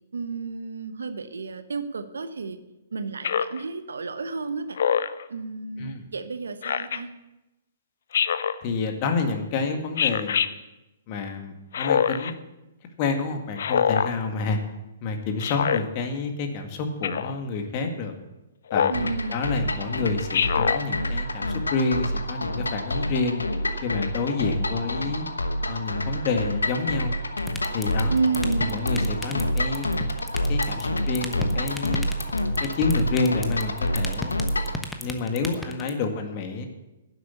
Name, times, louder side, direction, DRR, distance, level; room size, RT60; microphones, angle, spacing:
voice 1, 0.1-2.6 2.9-4.8 5.3-7.1 18.9-19.5 28.1-28.8, right 4 dB, 75° right, 11 dB, 1.0 m, -31 dB
Speech synthesizer, 3.2-3.6 4.8-5.2 6.6-7.0 8.1-8.6 10.0-10.5 11.7-12.3 13.6-14.1 15.4-15.8 17.0-17.4 18.7-19.1 20.3-20.8, left 7 dB, 60° left, 0.6 m, -24 dB
voice 2, 8.6-10.4 11.1-12.3 13.0-14.6 15.0-18.1 18.7-23.4 23.8-25.3 25.7-27.2 27.7-28.2 28.6-30.0 30.5-32.1 32.6-34.4 35.0-36.7, left 4 dB, 40° left, 5 dB, 1.9 m, -28 dB
sound 1, 18.9-34.8, left 1 dB, 85° left, 1.0 m, -27 dB
sound 2, 27.4-35.9, left 2 dB, 5° left, 1.1 m, -33 dB
10.5 x 7.9 x 8.2 m, 0.98 s
figure-of-eight pair, 120°, 0 cm